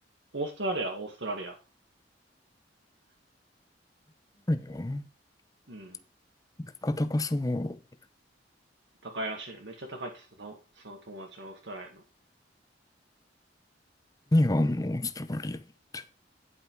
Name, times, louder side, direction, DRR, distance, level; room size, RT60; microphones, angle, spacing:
voice 1, 0.3-1.5 5.7-6.0 9.0-12.0, right 2 dB, 85° right, 1.7 m, -37 dB
voice 2, 4.5-5.0 6.6-7.8 14.3-15.6 15.9-16.0, left 1 dB, 20° left, 0.6 m, -28 dB
9.9 x 5.6 x 4.5 m
head